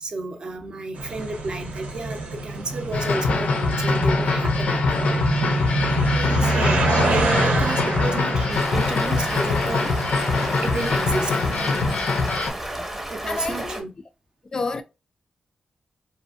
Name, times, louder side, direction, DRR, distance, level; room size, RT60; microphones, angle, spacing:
voice 1, 0.0-5.2 6.1-10.0 10.6-11.7 12.8-13.9, right 2 dB, 40° right, 0.5 m, -32 dB
sound 1, 1.0-12.0, right 2 dB, 85° right, 0.8 m, -26 dB
sound 2, 2.9-12.5, left 4 dB, 85° left, 0.5 m, -24 dB
Stream, 8.5-13.8, right 1 dB, 15° right, 0.8 m, -32 dB
voice 2, 13.3-13.8 14.5-14.8, left 3 dB, 30° left, 0.3 m, -28 dB
2.7 x 2.4 x 2.4 m
wide cardioid pair, 145°, 2 cm